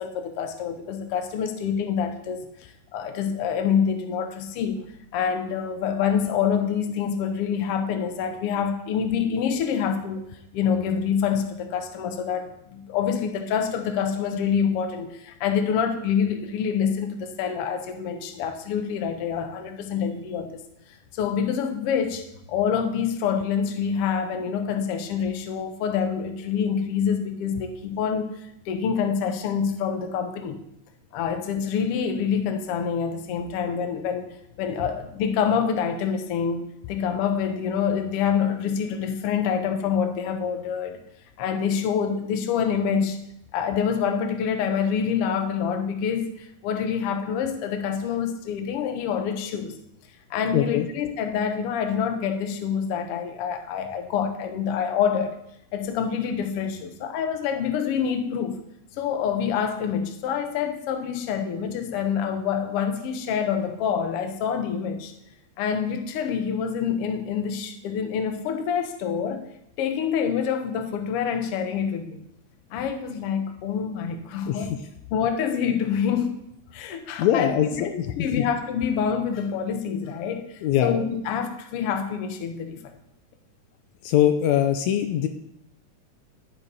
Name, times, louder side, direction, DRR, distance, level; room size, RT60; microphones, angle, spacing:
voice 1, 0.0-2.5 2.9-4.8 5.1-10.2 10.5-20.6 21.1-30.6 31.1-34.3 34.6-41.0 41.4-43.2 43.5-49.8 50.3-55.3 55.7-58.6 59.0-65.1 65.6-69.5 69.8-72.2 72.7-74.7 75.1-76.3 76.7-82.8, left 7 dB, 65° left, 6 dB, 1.7 m, -26 dB
voice 2, 50.5-50.9 74.5-74.7 77.2-78.4 80.6-81.0 84.0-85.3, left 10 dB, 80° left, 7 dB, 1.9 m, -22 dB
11.5 x 6.9 x 4.1 m, 0.79 s
omnidirectional pair, 3.3 m